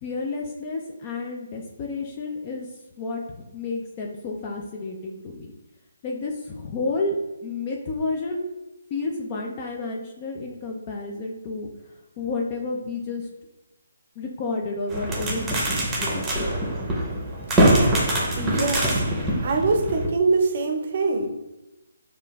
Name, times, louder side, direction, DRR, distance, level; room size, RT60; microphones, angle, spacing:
voice 1, 0.0-2.7 3.0-5.5 6.0-7.2 7.4-8.5 8.9-11.7 12.2-13.3 14.2-16.2, left 3 dB, 30° left, 0 dB, 0.4 m, -31 dB
sound 1, 14.9-20.1, right 1 dB, 10° right, 0.8 m, -23 dB
voice 2, 18.4-19.0 19.4-21.3, right 3 dB, 45° right, 5 dB, 0.6 m, -23 dB
6.4 x 2.5 x 2.4 m, 1.0 s
figure-of-eight pair, 150°, 0 cm